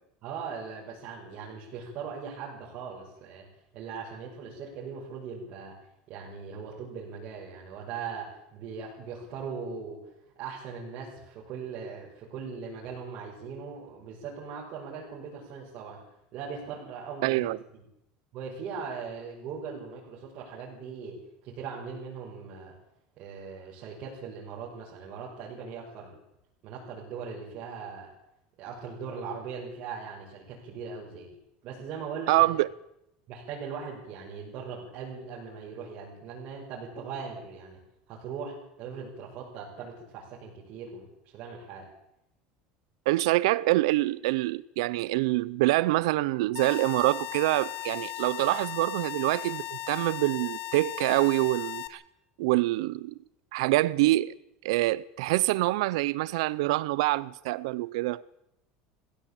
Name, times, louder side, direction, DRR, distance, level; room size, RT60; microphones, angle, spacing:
voice 1, 0.2-3.5 3.7-5.7 6.1-10.0 10.4-16.0 16.3-17.8 18.3-22.7 23.2-26.1 26.6-28.1 28.6-31.3 31.6-32.5 33.3-37.8 38.1-41.9, right 5 dB, 45° right, 6.7 m, -40 dB
voice 2, 17.2-17.6 32.3-32.7 43.1-52.0 52.4-53.2 53.5-54.3 54.6-58.2, right 19 dB, 85° right, 0.7 m, -25 dB
sound 1, 46.6-51.9, left 16 dB, 70° left, 1.8 m, -37 dB
19.5 x 16.0 x 8.8 m
cardioid pair, 150°, 3 cm